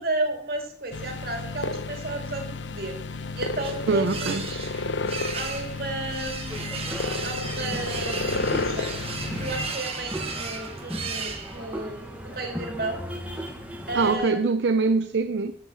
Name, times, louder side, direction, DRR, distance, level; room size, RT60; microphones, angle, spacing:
voice 1, 0.0-3.0 3.3-5.0 5.3-6.6 7.2-8.9 9.4-13.0 13.9-14.5, right 2 dB, 55° right, 2.1 m, -33 dB
sound 1, 0.9-9.7, left 3 dB, 85° left, 0.7 m, -32 dB
sound 2, 3.1-11.9, right 5 dB, 30° right, 1.2 m, -36 dB
voice 2, 3.9-4.4 13.9-15.6, right 4 dB, 75° right, 0.5 m, -23 dB
sound 3, 6.5-14.2, equal, 10° right, 1.2 m, -37 dB
7.6 x 6.5 x 7.5 m
head